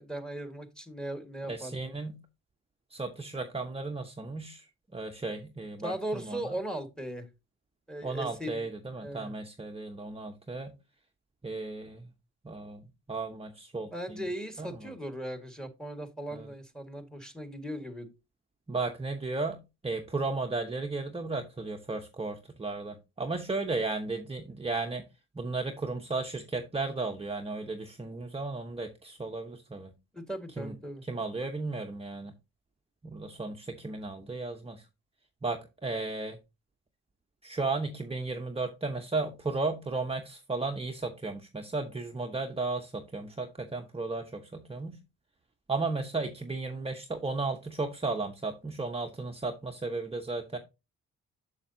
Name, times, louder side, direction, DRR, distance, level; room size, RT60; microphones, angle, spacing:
voice 1, 0.0-1.9 5.8-7.3 7.9-8.7 9.0-9.3 13.9-18.1 30.1-31.0, right 1 dB, ahead, 1.7 m, -38 dB
voice 2, 1.5-2.2 2.9-4.7 4.9-6.4 8.0-10.7 11.4-12.1 12.4-14.2 14.6-14.7 16.3-16.5 18.7-25.0 25.3-29.9 30.6-30.7 31.0-32.3 33.0-34.8 35.4-36.4 37.4-45.0 45.7-50.6, right 3 dB, 15° right, 0.9 m, -34 dB
7.2 x 6.6 x 2.7 m
cardioid pair, 70°, 33 cm